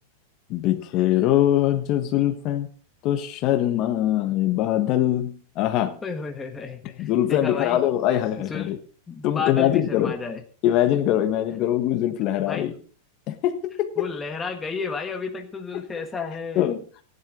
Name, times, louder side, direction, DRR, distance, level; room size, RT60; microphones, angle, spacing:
voice 1, 0.5-2.7 3.0-6.0 7.0-8.8 9.2-10.2 10.6-12.7 13.3-14.1 16.5-16.8, left 12 dB, 35° left, 8 dB, 1.3 m, -22 dB
voice 2, 6.0-7.8 8.4-8.7 9.1-10.4 12.4-12.7 14.0-16.7, left 5 dB, 15° left, 4 dB, 1.4 m, -32 dB
15.5 x 11.0 x 3.8 m, 0.40 s
supercardioid pair, 155°, 0 cm